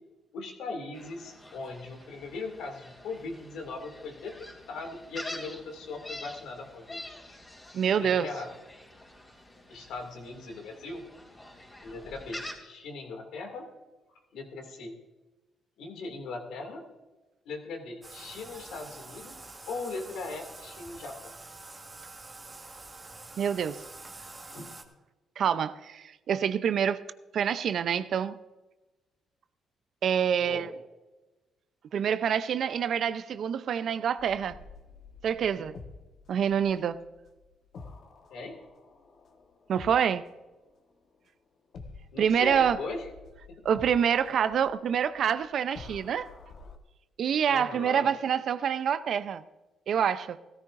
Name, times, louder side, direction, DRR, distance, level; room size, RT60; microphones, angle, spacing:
voice 1, 0.3-7.4 8.0-8.5 9.7-11.1 11.8-13.7 14.3-14.9 15.8-16.8 17.4-19.4 19.7-21.2 24.5-24.7 30.5-30.7 38.3-38.6 42.1-43.1 43.5-43.6 47.5-48.1, left 3 dB, 80° left, 2.4 m, -39 dB
Gull seagull, 0.9-12.5, left 1 dB, 20° left, 3.1 m, -46 dB
voice 2, 7.7-8.3 23.4-23.8 25.4-27.0 27.3-28.4 30.0-30.7 31.9-34.6 35.2-35.7 36.3-37.0 39.7-40.2 42.2-42.8 43.6-46.3 47.2-49.4 49.9-50.4, right 8 dB, 65° right, 0.6 m, -26 dB
Bathtub (filling or washing), 18.0-24.8, right 2 dB, 25° right, 1.6 m, -46 dB
sound 1, 34.2-41.3 41.7-46.8, left 4 dB, 60° left, 1.3 m, -49 dB
16.5 x 14.0 x 2.6 m
cardioid pair, 90°, 0 cm